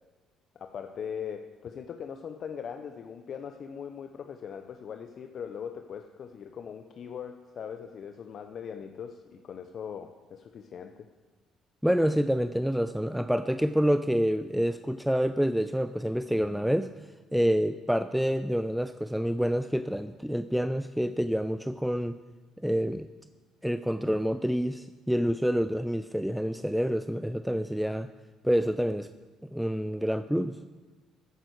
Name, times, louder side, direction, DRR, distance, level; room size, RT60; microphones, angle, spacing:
voice 1, 0.6-10.9, left 7 dB, 55° left, 6 dB, 0.7 m, -40 dB
voice 2, 11.8-16.9 17.3-22.2 22.6-23.1 23.6-28.1 28.4-29.1 29.5-30.6, equal, ahead, 12 dB, 0.4 m, -27 dB
15.0 x 9.0 x 4.7 m, 1.3 s
supercardioid pair, 75°, 0 cm